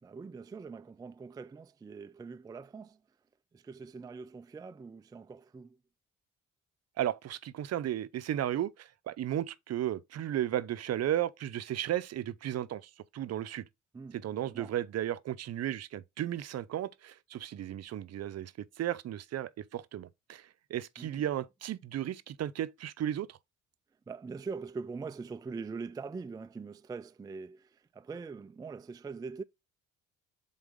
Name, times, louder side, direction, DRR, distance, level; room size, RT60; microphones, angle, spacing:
voice 1, 0.0-3.0 3.5-5.8 13.9-14.8 21.0-21.2 24.1-29.4, right 4 dB, 15° right, 0.3 m, -43 dB
voice 2, 7.0-13.6 14.1-23.4, right 11 dB, 55° right, 0.6 m, -34 dB
7.4 x 4.0 x 3.6 m
cardioid pair, 90°, 30 cm